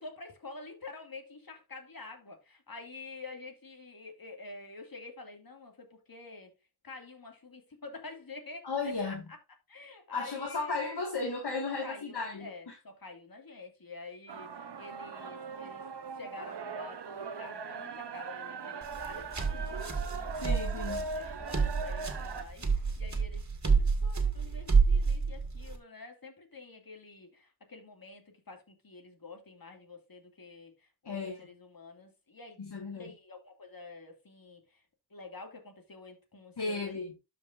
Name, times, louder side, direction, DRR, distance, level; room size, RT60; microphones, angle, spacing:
voice 1, 0.0-6.5 6.8-9.4 9.7-10.9 11.7-15.8 16.1-20.4 20.8-32.6 32.9-34.8 35.1-37.0, left 3 dB, 60° left, 2.4 m, -48 dB
voice 2, 8.6-9.3 10.1-12.5 20.4-21.0 31.1-31.4 32.6-33.0 36.6-37.1, left 3 dB, 75° left, 2.0 m, -34 dB
sound 1, 14.3-22.4, right 4 dB, 90° right, 0.9 m, -40 dB
sound 2, 18.8-25.8, right 5 dB, 45° right, 1.9 m, -29 dB
12.5 x 5.2 x 2.6 m
cardioid pair, 45°, 40 cm